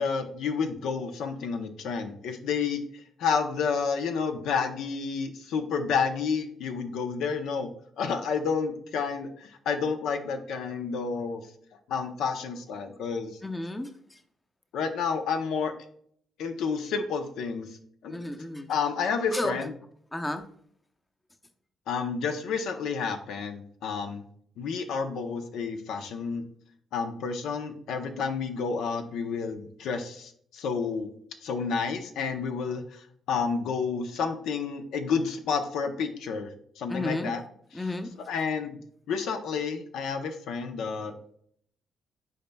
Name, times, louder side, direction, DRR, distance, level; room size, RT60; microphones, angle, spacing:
voice 1, 0.0-7.7 8.0-11.4 11.9-13.4 14.7-15.7 16.4-17.7 18.0-18.2 18.7-19.7 21.9-24.2 24.6-26.4 26.9-31.1 31.4-36.5 36.8-37.4 37.7-37.8 38.2-38.8 39.1-41.1, left 5 dB, 80° left, 6 dB, 0.7 m, -30 dB
voice 2, 13.4-13.9 18.1-18.7 19.3-19.6 20.1-20.4 36.9-37.3 37.7-38.1, left 2 dB, 15° left, 7 dB, 0.6 m, -32 dB
10.0 x 4.2 x 2.2 m, 0.65 s
cardioid pair, 90°, 0 cm